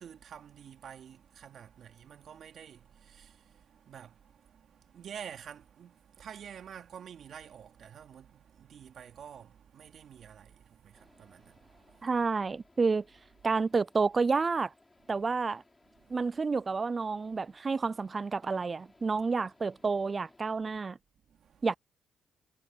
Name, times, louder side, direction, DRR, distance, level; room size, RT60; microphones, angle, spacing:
voice 1, 0.0-12.2 16.0-16.3 21.3-21.7, right 8 dB, 60° right, 2.6 m, -49 dB
sound 1, 10.9-20.5, left 2 dB, 15° left, 7.1 m, -64 dB
voice 2, 12.0-13.0 13.4-14.7 15.1-15.6 16.1-21.0 21.6-21.7, right 4 dB, 30° right, 0.3 m, -29 dB
cardioid pair, 90°, 0 cm